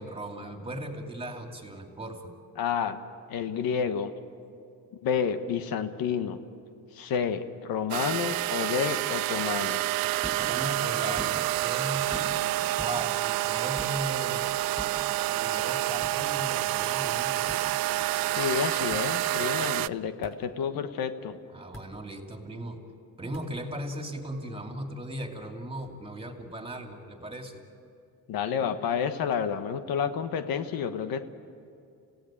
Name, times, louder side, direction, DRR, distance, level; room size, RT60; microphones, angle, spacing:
voice 1, 0.0-2.2 10.4-12.1 12.8-14.4 15.3-17.4 19.5-19.8 21.5-22.8 23.2-27.6, right 1 dB, 15° right, 3 dB, 2.8 m, -37 dB
voice 2, 2.6-3.0 3.3-4.1 5.0-6.4 6.9-9.8 18.3-21.4 28.3-31.3, left 7 dB, 70° left, 9 dB, 1.4 m, -30 dB
sound 1, 7.9-19.9, right 16 dB, 70° right, 0.5 m, -28 dB
sound 2, 10.2-10.5 11.0-11.6 12.1-12.5 12.8-13.0 13.8-14.0 14.8-15.0 16.0-16.2 17.5-17.6 18.9-19.1 20.2-20.3 21.7-21.8 23.3-23.4, left 1 dB, 5° left, 5.8 m, -41 dB
29.0 x 17.0 x 9.0 m, 2.5 s
cardioid pair, 105°, 37 cm